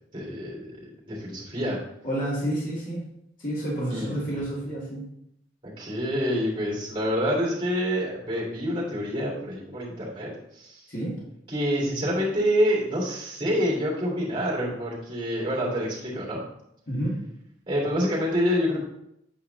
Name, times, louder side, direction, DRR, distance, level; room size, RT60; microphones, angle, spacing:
voice 1, 0.1-1.8 3.9-4.2 5.6-10.8 11.5-16.4 17.7-18.8, equal, 25° right, -4 dB, 3.2 m, -27 dB
voice 2, 2.0-3.0 3.4-5.1 10.9-11.1 16.9-17.1, right 1 dB, 45° left, -6 dB, 2.4 m, -29 dB
8.9 x 5.0 x 4.1 m, 0.77 s
head